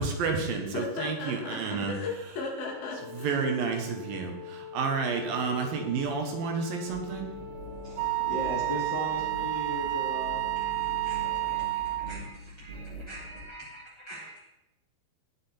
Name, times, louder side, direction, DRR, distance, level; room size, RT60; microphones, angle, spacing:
voice 1, 0.0-1.9 3.2-7.3, right 5 dB, 70° right, 3 dB, 2.9 m, -30 dB
voice 2, 0.7-3.5, left 3 dB, 70° left, -2 dB, 4.4 m, -36 dB
Wind instrument woodwind instrument, 2.5-11.6, left 6 dB, 55° right, 2.8 m, -44 dB
sound 1, 6.9-13.4, right 2 dB, 40° right, 2.6 m, -43 dB
voice 3, 7.8-14.4, equal, 40° left, -5 dB, 1.6 m, -39 dB
Wind instrument woodwind instrument 2, 8.0-12.2, right 19 dB, 85° right, 2.6 m, -30 dB
18.0 x 6.1 x 4.4 m, 0.94 s
omnidirectional pair, 4.5 m